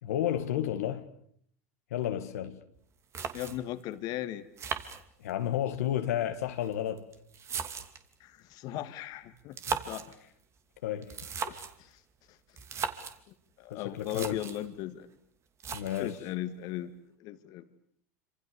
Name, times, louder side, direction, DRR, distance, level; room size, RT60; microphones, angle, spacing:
voice 1, 0.0-1.1 1.9-2.6 5.2-7.1 10.8-11.2 13.7-14.5 15.7-16.2, left 11 dB, 80° left, 2.0 m, -32 dB
sound 1, 2.8-2.9 3.1-3.8 4.6-5.5 6.4-8.1 9.4-10.2 11.0-11.8 12.6-13.2 13.7-13.8 14.0-14.7 15.6-16.2, right 6 dB, 35° right, 2.8 m, -37 dB
voice 2, 3.3-4.5 8.2-10.2 11.4-12.0 12.3-12.4 13.3-15.1 16.0-16.9 17.2-17.6, left 13 dB, 55° left, 2.0 m, -38 dB
27.5 x 26.0 x 7.1 m
hypercardioid pair, 95°, 8 cm